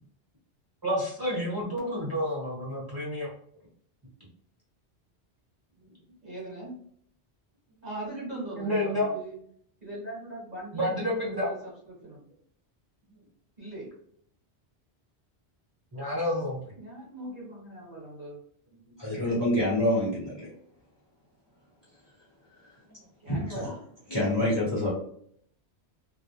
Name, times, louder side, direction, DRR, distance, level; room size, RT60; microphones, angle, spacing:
voice 1, 0.8-3.3 8.6-9.1 10.7-11.5 15.9-16.6 18.9-19.0 22.9-23.0, left 1 dB, 20° right, -6 dB, 1.0 m, -29 dB
voice 2, 6.2-6.7 7.8-9.4 9.8-12.3 13.6-13.9 16.7-18.4 23.2-23.7, right 1 dB, 40° right, -6 dB, 1.2 m, -40 dB
voice 3, 19.0-20.5 23.3-23.7 24.1-24.9, left 1 dB, 25° left, -7 dB, 0.9 m, -26 dB
2.3 x 2.1 x 2.8 m, 0.64 s
omnidirectional pair, 1.1 m